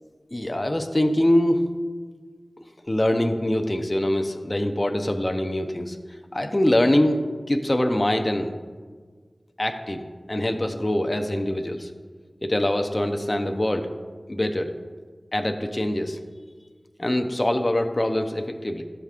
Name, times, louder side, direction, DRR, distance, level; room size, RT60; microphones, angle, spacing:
voice 1, 0.3-1.7 2.8-6.0 6.3-8.5 9.6-10.0 10.3-11.9 12.4-13.9 14.3-14.7 15.3-16.2 17.0-18.8, left 1 dB, 35° left, 5 dB, 0.7 m, -23 dB
14.0 x 6.0 x 2.5 m, 1.5 s
wide cardioid pair, 45°, 0 cm